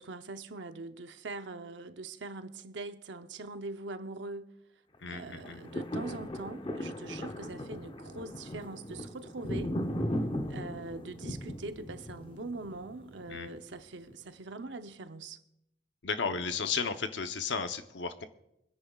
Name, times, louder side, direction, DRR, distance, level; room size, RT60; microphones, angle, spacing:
voice 1, 0.0-4.5 5.1-9.8 10.5-15.4, right 3 dB, 80° right, 0.7 m, -42 dB
voice 2, 5.0-5.6 13.3-13.5 16.0-18.2, left 5 dB, 75° left, 0.9 m, -34 dB
sound 1, 5.3-13.6 14.1-14.2, equal, 30° left, 0.8 m, -37 dB
25.0 x 10.0 x 2.4 m
head